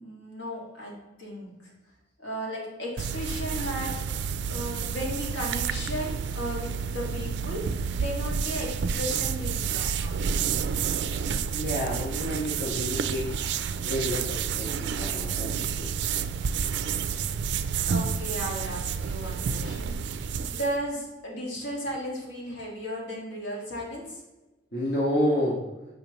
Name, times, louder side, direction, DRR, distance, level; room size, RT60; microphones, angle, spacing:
voice 1, 0.0-1.7 2.2-4.0 4.5-10.4 16.5-17.0 17.9-24.2, equal, 85° left, -3 dB, 1.8 m, -35 dB
sound 1, 3.0-20.8, right 6 dB, 70° right, 0.3 m, -30 dB
voice 2, 11.5-15.9 24.7-25.6, equal, 60° left, -6 dB, 1.4 m, -30 dB
6.8 x 5.2 x 3.0 m, 1.1 s
head